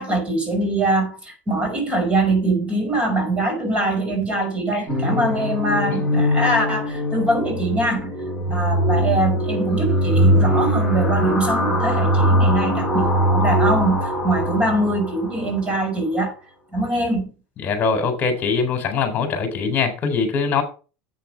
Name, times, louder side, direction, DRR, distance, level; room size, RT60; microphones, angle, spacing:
voice 1, 0.0-8.1 8.5-16.3 16.7-17.3, right 2 dB, 20° right, 5.3 m, -23 dB
sound 1, 4.9-15.7, equal, ahead, 6.2 m, -21 dB
voice 2, 17.6-20.6, left 5 dB, 35° left, 4.0 m, -22 dB
10.0 x 8.5 x 4.6 m
supercardioid pair, 130°, 6 cm